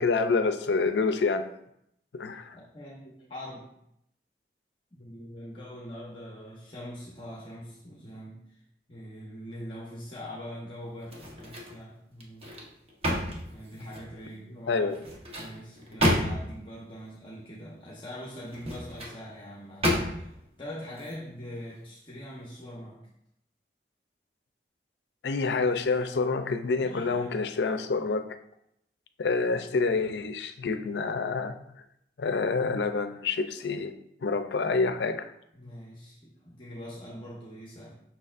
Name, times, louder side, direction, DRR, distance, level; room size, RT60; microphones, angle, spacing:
voice 1, 0.0-1.5 2.1-2.6 14.7-14.9 25.2-28.3 29.2-31.5 32.2-33.9 34.2-35.3, left 4 dB, 75° left, 9 dB, 0.5 m, -27 dB
voice 2, 2.5-3.7 4.9-8.6 8.9-12.5 13.5-14.9 15.4-23.0 26.8-27.4 35.5-38.0, equal, 25° left, -4 dB, 0.9 m, -43 dB
sound 1, 11.0-11.8 12.2-14.2 14.9-16.6 18.4-19.2 19.8-20.4 20.9-21.1, equal, 35° right, 1.0 m, -30 dB
6.6 x 5.9 x 2.5 m, 0.76 s
head